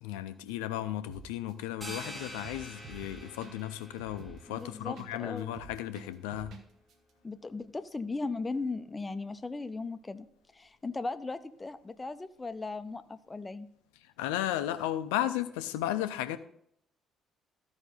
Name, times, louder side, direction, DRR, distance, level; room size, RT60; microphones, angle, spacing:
voice 1, 0.0-6.5 14.2-16.4, left 13 dB, 70° left, 0.5 m, -34 dB
sound 1, 1.1-1.5 1.9-2.0 2.3-5.1 5.4-6.6 6.9-7.0, right 5 dB, 55° right, 0.9 m, -48 dB
sound 2, 1.8-7.2, equal, 20° right, 3.3 m, -48 dB
voice 2, 4.5-5.6 7.2-10.3 10.5-13.7, left 3 dB, 20° left, 0.6 m, -37 dB
13.5 x 5.3 x 3.8 m
figure-of-eight pair, 45°, 0 cm